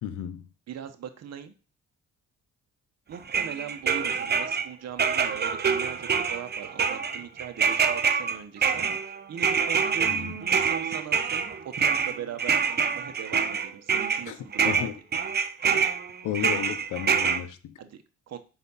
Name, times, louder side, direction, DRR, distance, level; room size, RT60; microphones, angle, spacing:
voice 1, 0.0-0.5 10.1-10.3 14.3-14.4 14.6-15.0 16.2-17.8, left 10 dB, 85° left, 0.8 m, -33 dB
voice 2, 0.7-1.5 3.1-9.0 9.3-14.9 15.6-15.8 17.8-18.4, right 8 dB, 60° right, 1.1 m, -40 dB
sound 1, 3.3-4.7 5.0-14.2 14.5-17.4, right 6 dB, 35° right, 0.7 m, -26 dB
5.9 x 4.1 x 5.5 m
cardioid pair, 90°, 30 cm